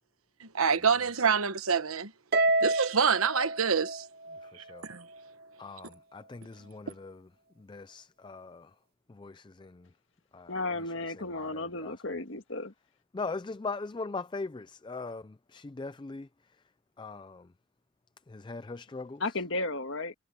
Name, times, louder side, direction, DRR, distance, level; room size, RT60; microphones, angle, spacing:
voice 1, 0.4-2.1 2.6-4.1 4.5-5.0, right 6 dB, 80° right, 1.1 m, -27 dB
Harp, 2.3-4.8, right 2 dB, 45° right, 0.8 m, -29 dB
voice 2, 4.4-4.9 5.6-7.2 7.6-8.7 9.1-9.9 10.3-10.6 10.9-11.9 13.1-16.3 17.0-17.5 18.3-19.2, left 3 dB, 20° left, 0.4 m, -40 dB
voice 3, 10.5-12.7 19.2-20.1, left 2 dB, 60° left, 2.0 m, -34 dB
head